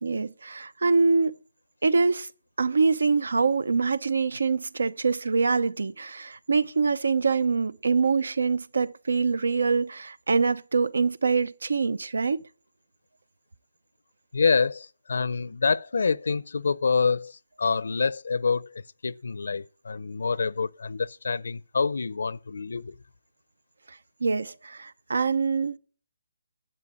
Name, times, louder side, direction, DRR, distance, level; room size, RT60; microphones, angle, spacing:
voice 1, 0.0-1.4 1.8-2.3 2.6-12.4 23.9-25.8, right 4 dB, 85° right, 0.7 m, -25 dB
voice 2, 14.3-17.3 17.6-18.7 19.0-22.9, left 5 dB, 75° left, 0.6 m, -26 dB
11.0 x 8.3 x 8.6 m
hypercardioid pair, 165°, 0 cm